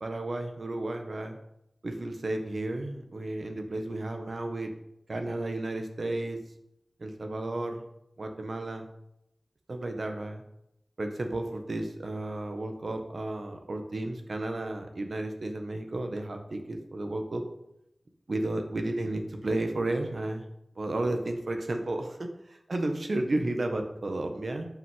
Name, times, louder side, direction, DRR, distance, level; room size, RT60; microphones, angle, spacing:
voice 1, 0.0-1.4 1.8-4.7 5.1-6.4 7.0-7.8 8.2-8.9 9.7-10.4 11.0-17.4 18.3-20.4 20.8-24.7, right 2 dB, 75° right, 5 dB, 1.6 m, -33 dB
9.3 x 6.0 x 7.6 m, 0.82 s
wide cardioid pair, 65°, 0 cm